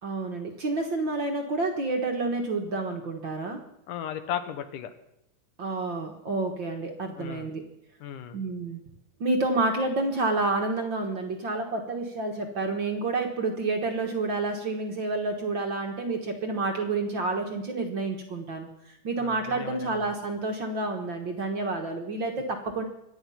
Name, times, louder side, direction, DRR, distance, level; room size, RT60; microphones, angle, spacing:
voice 1, 0.0-3.6 5.6-7.6 8.3-8.8 9.2-22.8, right 3 dB, 50° right, 3 dB, 1.6 m, -29 dB
voice 2, 3.9-4.9 7.2-7.5 8.0-8.4 19.2-20.1, left 9 dB, 85° left, 10 dB, 2.8 m, -36 dB
24.5 x 9.6 x 5.7 m, 0.82 s
omnidirectional pair, 3.6 m